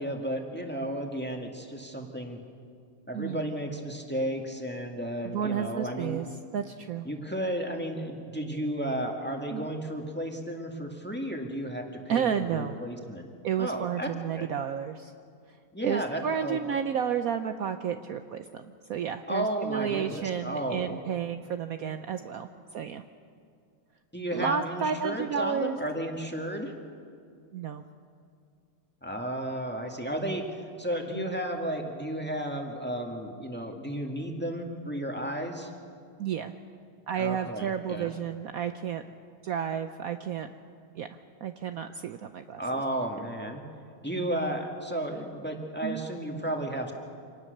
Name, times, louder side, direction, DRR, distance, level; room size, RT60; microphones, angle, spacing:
voice 1, 0.0-2.4 3.1-6.2 7.0-13.3 13.6-14.5 15.7-16.6 19.3-21.0 24.1-26.7 29.0-35.7 37.2-38.1 42.6-43.6 44.0-46.9, right 1 dB, 5° left, 2 dB, 1.7 m, -33 dB
voice 2, 3.1-3.5 5.2-6.3 6.5-7.0 9.5-9.7 12.1-12.8 13.4-15.1 15.8-18.5 18.9-22.5 22.7-23.0 24.3-25.8 27.5-27.8 31.1-31.3 36.2-36.5 37.1-39.0 39.4-40.5 41.0-41.1 41.4-42.6 45.8-46.0, right 8 dB, 80° right, 8 dB, 0.8 m, -31 dB
26.0 x 18.5 x 6.6 m, 2.3 s
omnidirectional pair, 2.3 m